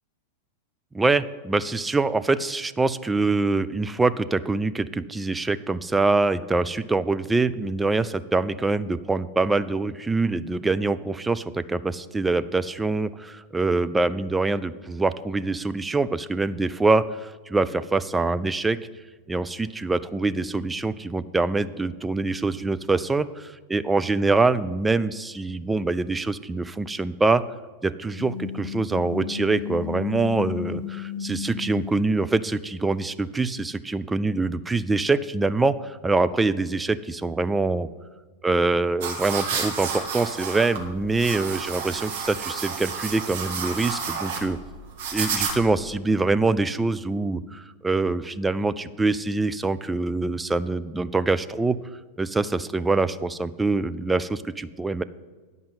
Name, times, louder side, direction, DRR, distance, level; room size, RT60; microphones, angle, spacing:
voice 1, 0.9-18.8 19.3-23.3 23.7-27.4 27.8-37.9 38.4-44.6 45.1-51.8 52.2-55.0, right 3 dB, 10° right, 13 dB, 0.4 m, -24 dB
sound 1, 28.2-32.7, left 9 dB, 50° left, 0.5 m, -34 dB
sound 2, 39.0-45.8, right 5 dB, 50° right, 1.6 m, -31 dB
10.0 x 5.4 x 7.7 m, 1.4 s
figure-of-eight pair, 90°, 0 cm